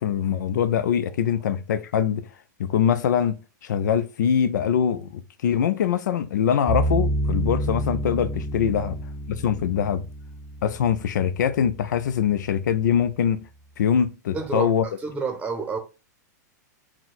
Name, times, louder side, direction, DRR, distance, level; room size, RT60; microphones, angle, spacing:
voice 1, 0.0-2.3 2.6-3.4 3.6-8.9 9.3-10.0 10.6-13.5 13.8-14.8, left 8 dB, 75° left, 0.6 m, -23 dB
sound 1, 6.7-11.8, right 1 dB, 10° left, 0.9 m, -28 dB
voice 2, 14.3-15.8, right 5 dB, 10° right, 0.8 m, -30 dB
4.5 x 2.2 x 3.9 m
hypercardioid pair, 120°, 10 cm